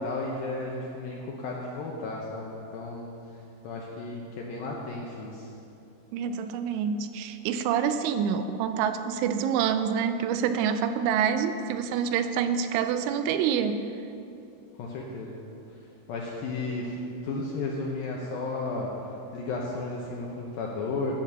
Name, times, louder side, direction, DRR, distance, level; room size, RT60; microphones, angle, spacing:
voice 1, 0.0-3.2 3.6-5.5 14.8-15.4 16.1-18.9 19.3-21.1, left 3 dB, 75° left, -2 dB, 2.2 m, -33 dB
voice 2, 6.1-13.9, right 7 dB, 90° right, 9 dB, 3.0 m, -27 dB
10.0 x 9.0 x 6.8 m, 2.7 s
omnidirectional pair, 5.3 m